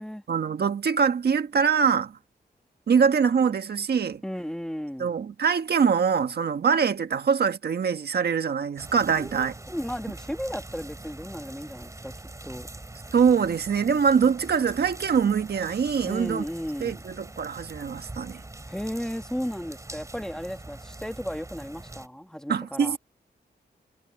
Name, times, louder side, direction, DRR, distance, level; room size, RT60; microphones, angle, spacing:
voice 1, 0.3-2.1 2.9-4.2 5.0-9.5 13.1-16.5 16.8-18.4 22.5-23.0, right 6 dB, 65° right, 1.4 m, -23 dB
voice 2, 4.2-5.1 9.2-12.1 12.4-12.7 16.0-17.0 18.7-23.0, equal, 5° left, 1.5 m, -34 dB
sound 1, 8.8-22.1, right 2 dB, 20° right, 3.4 m, -43 dB
wide cardioid pair, 155°, 18 cm